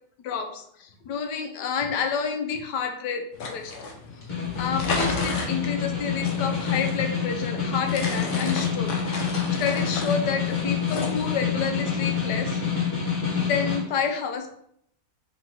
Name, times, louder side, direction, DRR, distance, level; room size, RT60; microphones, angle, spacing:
voice 1, 0.2-3.7 4.6-8.9 9.5-12.6 13.3-14.6, left 6 dB, 85° left, 4 dB, 1.2 m, -29 dB
sound 1, 3.3-11.5, left 3 dB, 55° left, 0.9 m, -34 dB
Snare drum, 4.1-13.9, left 6 dB, 40° left, 1.4 m, -27 dB
4.1 x 2.8 x 3.7 m, 0.69 s
omnidirectional pair, 1.8 m